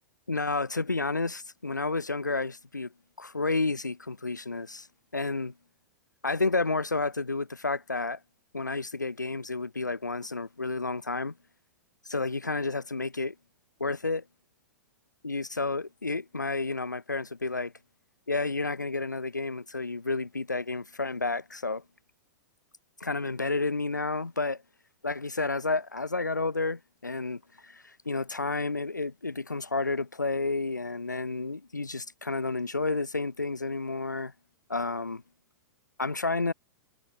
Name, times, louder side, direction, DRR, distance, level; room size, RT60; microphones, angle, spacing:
voice 1, 0.3-2.9 3.2-4.9 5.1-5.5 6.2-8.2 8.5-11.3 12.1-13.3 13.8-14.2 15.2-17.7 18.3-21.8 23.0-24.6 25.0-34.3 34.7-35.2 36.0-36.5, left 3 dB, 90° left, 0.4 m, -31 dB
figure-of-eight pair, 100°, 10 cm